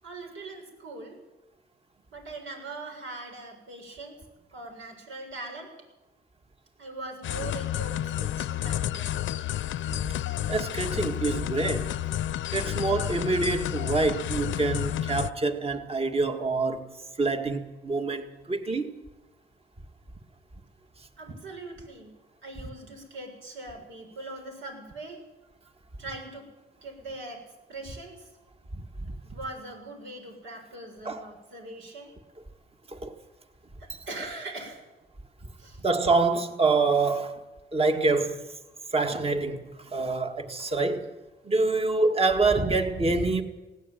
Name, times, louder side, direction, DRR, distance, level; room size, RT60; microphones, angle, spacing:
voice 1, 0.0-1.2 2.1-4.2 4.5-5.7 6.8-9.2 12.6-12.8 21.2-22.1 22.4-25.2 26.0-26.5 26.8-27.4 27.7-28.3 29.2-32.1 33.8-34.8 35.6-35.8, right 2 dB, 75° right, 7.1 m, -41 dB
sound 1, 7.2-15.3, left 12 dB, 70° left, 0.8 m, -30 dB
voice 2, 10.5-11.9 12.5-16.9 17.2-18.9 28.7-28.8 31.1-31.3 32.9-33.1 35.8-37.3 37.7-38.4 38.9-41.1 41.5-43.4, right 3 dB, 30° right, 2.1 m, -26 dB
20.0 x 17.0 x 9.3 m
cardioid pair, 90°, 20 cm